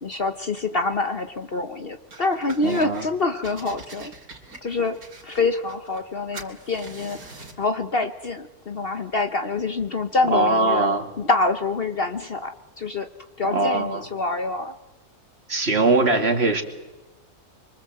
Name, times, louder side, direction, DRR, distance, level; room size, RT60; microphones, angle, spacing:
voice 1, 0.0-4.1 4.6-5.0 5.2-7.2 7.6-10.9 11.2-12.5 12.8-13.1 13.4-14.7, left 3 dB, 45° left, 8 dB, 1.1 m, -26 dB
sound 1, 2.1-3.1 3.4-6.1 6.3-7.7, right 3 dB, 75° right, 3.4 m, -43 dB
voice 2, 2.6-3.1 10.3-11.1 13.4-14.0 15.5-16.6, right 2 dB, 45° right, 5 dB, 2.4 m, -21 dB
25.5 x 23.5 x 7.7 m, 1.1 s
omnidirectional pair, 1.5 m